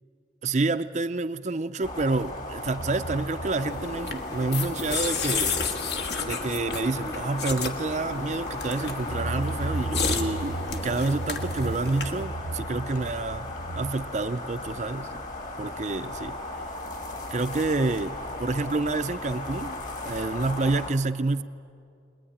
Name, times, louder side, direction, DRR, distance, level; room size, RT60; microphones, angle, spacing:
voice 1, 0.4-5.6 6.2-13.5 13.7-15.2 15.6-16.4 17.1-19.8 20.0-21.4, right 3 dB, 40° right, 0.5 m, -28 dB
sound 1, 1.8-20.9, left 2 dB, 40° left, 2.3 m, -36 dB
sound 2, 2.8-5.3 5.6-6.0 6.2-6.3 8.9-13.9, right 2 dB, 85° right, 0.8 m, -36 dB
sound 3, 3.6-12.2, left 5 dB, 60° left, 1.6 m, -32 dB
22.5 x 20.0 x 10.0 m
head